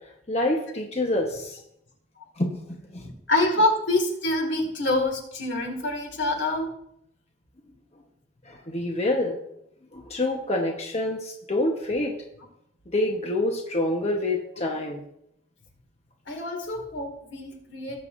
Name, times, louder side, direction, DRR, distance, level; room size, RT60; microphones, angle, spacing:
voice 1, 0.3-1.6 2.4-3.1 8.4-9.4 9.9-12.1 12.9-15.0, left 1 dB, 35° left, 1 dB, 1.1 m, -27 dB
voice 2, 3.0-6.7 16.3-18.1, left 2 dB, 85° left, 2 dB, 2.2 m, -26 dB
18.5 x 7.0 x 2.6 m, 0.76 s
head